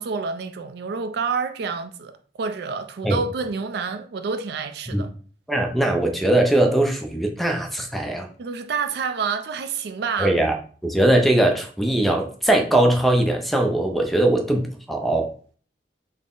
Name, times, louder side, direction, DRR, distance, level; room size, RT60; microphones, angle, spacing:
voice 1, 0.0-5.1 8.4-10.4, right 5 dB, 65° right, 0.3 m, -28 dB
voice 2, 5.5-8.3 10.2-10.6 10.8-15.3, right 1 dB, ahead, 0.4 m, -20 dB
3.9 x 2.0 x 3.7 m
head